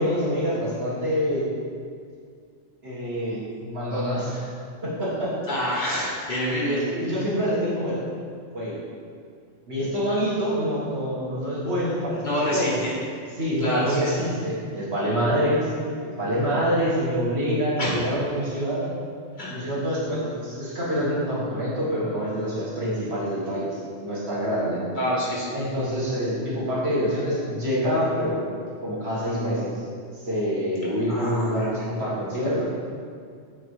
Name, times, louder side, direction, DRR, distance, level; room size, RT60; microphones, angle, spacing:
voice 1, 0.0-1.5 2.8-4.5 4.8-5.3 6.5-8.0 8.5-8.8 9.7-12.2 12.5-12.7 13.4-15.7 16.0-18.9 19.5-24.8 25.5-28.4 28.8-29.8 30.1-32.6, equal, 65° right, -8 dB, 1.9 m, -26 dB
voice 2, 5.5-6.8 12.2-12.7 13.6-14.1 17.8-18.0 19.4-19.6 24.9-25.5 31.1-31.8, equal, 45° left, -7 dB, 1.5 m, -27 dB
8.3 x 4.0 x 3.2 m, 2.2 s
omnidirectional pair, 1.1 m